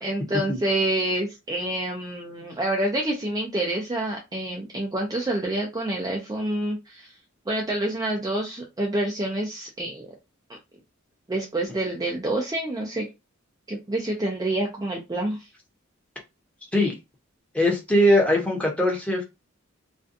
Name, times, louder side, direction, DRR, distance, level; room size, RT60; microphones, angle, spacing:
voice 1, 0.0-7.1 7.5-10.1 11.3-13.1 13.7-15.5, right 1 dB, 20° right, 0.4 m, -27 dB
voice 2, 17.5-19.2, left 1 dB, 5° left, 0.7 m, -21 dB
2.5 x 2.2 x 2.5 m
head